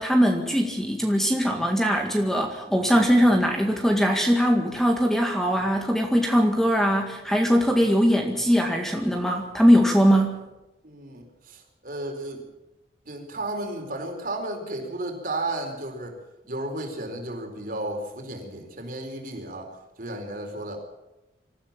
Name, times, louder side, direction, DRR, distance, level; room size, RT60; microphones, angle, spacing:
voice 1, 0.0-10.4, equal, ahead, 2 dB, 1.9 m, -21 dB
voice 2, 10.8-12.4 13.1-16.2 16.5-19.7 20.0-20.8, right 1 dB, 50° right, 3 dB, 4.4 m, -33 dB
25.5 x 14.5 x 7.4 m, 0.99 s
head